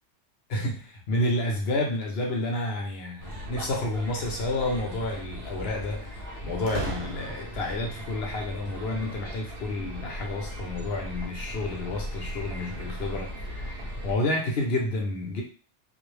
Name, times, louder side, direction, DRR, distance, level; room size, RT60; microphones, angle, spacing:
voice 1, 0.5-15.4, left 2 dB, 65° left, 1 dB, 0.8 m, -30 dB
sound 1, 3.1-4.2 6.7-7.7, right 2 dB, 80° right, 0.9 m, -37 dB
sound 2, 3.2-14.1, equal, 55° right, 1.0 m, -38 dB
2.4 x 2.0 x 3.1 m, 0.38 s
omnidirectional pair, 1.2 m